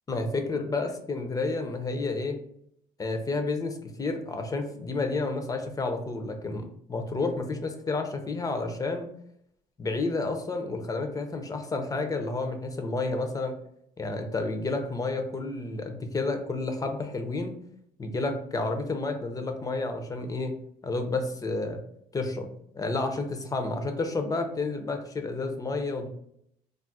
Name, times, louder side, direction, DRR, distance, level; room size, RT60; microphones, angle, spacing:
voice 1, 0.1-2.4 3.0-9.1 9.8-13.5 14.0-17.6 18.0-20.6 20.8-21.8 22.1-26.1, left 3 dB, 20° left, 5 dB, 0.5 m, -30 dB
2.4 x 2.0 x 3.9 m, 0.71 s
cardioid pair, 110°, 17 cm